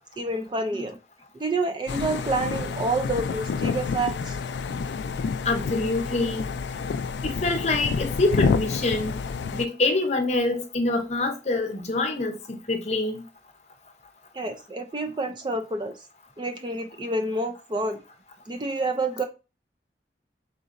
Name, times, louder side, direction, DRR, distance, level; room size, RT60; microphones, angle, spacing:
voice 1, 0.2-1.0 1.3-4.4 14.3-15.9 16.4-18.0 18.5-19.2, right 2 dB, 25° right, 0.4 m, -28 dB
sound 1, 1.9-9.7, left 5 dB, 75° left, 0.3 m, -28 dB
voice 2, 5.4-6.5 7.2-9.2 9.5-13.2, left 2 dB, 40° left, 0.6 m, -25 dB
4.0 x 3.7 x 2.5 m
head